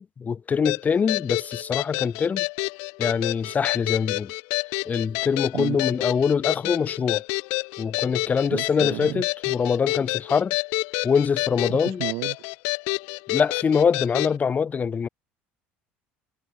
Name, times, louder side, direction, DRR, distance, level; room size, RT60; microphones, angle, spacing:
voice 1, 0.0-2.5 3.0-4.3 4.9-7.2 7.8-10.6 11.0-12.0 13.3-15.1, left 6 dB, 30° left, 1.9 m, -24 dB
sound 1, 0.6-14.3, left 40 dB or more, 75° left, 0.4 m, -29 dB
voice 2, 5.5-5.8 8.5-9.2 11.7-12.4, right 27 dB, 70° right, 1.7 m, -32 dB
hypercardioid pair, 80°, 5 cm